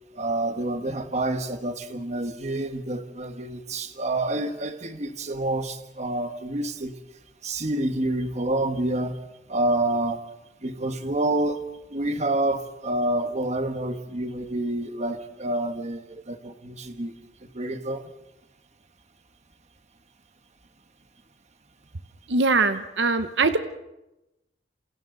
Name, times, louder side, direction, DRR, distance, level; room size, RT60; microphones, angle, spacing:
voice 1, 0.1-6.9 7.4-9.2 9.5-10.2 10.6-11.6 11.9-17.1 17.5-18.1, right 1 dB, 40° right, 8 dB, 1.5 m, -28 dB
voice 2, 22.3-23.6, right 3 dB, 90° right, 10 dB, 1.0 m, -22 dB
28.5 x 28.0 x 4.0 m, 0.95 s
head